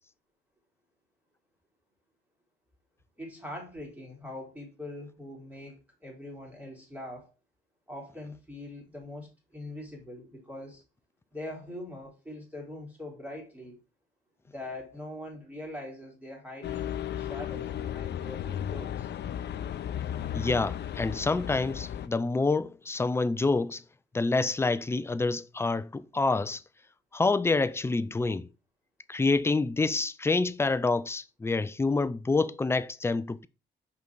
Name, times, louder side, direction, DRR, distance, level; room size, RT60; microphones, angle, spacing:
voice 1, 3.2-7.3 7.9-10.8 11.3-13.8 14.5-19.1, left 1 dB, 10° right, 3.0 m, -42 dB
sound 1, 16.6-22.1, left 10 dB, 60° left, 0.6 m, -35 dB
voice 2, 20.3-23.8 24.1-26.6 27.1-28.5 29.1-33.5, left 3 dB, 15° left, 0.4 m, -27 dB
5.4 x 4.0 x 4.6 m
cardioid pair, 90°, 20 cm